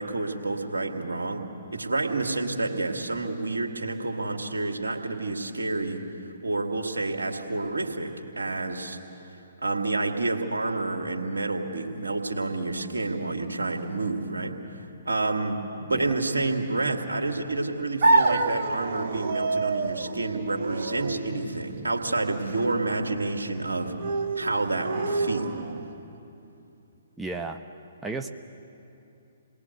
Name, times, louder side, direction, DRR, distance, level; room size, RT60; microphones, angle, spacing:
voice 1, 0.0-6.0 6.4-9.0 9.6-23.9 24.4-25.6, right 2 dB, 80° right, 3 dB, 2.4 m, -29 dB
sound 1, 18.0-26.0, right 3 dB, 50° right, 1.6 m, -28 dB
voice 2, 27.2-27.6 28.0-28.3, right 3 dB, 5° right, 3 dB, 0.9 m, -33 dB
29.0 x 20.5 x 8.0 m, 2.8 s
figure-of-eight pair, 130°, 0 cm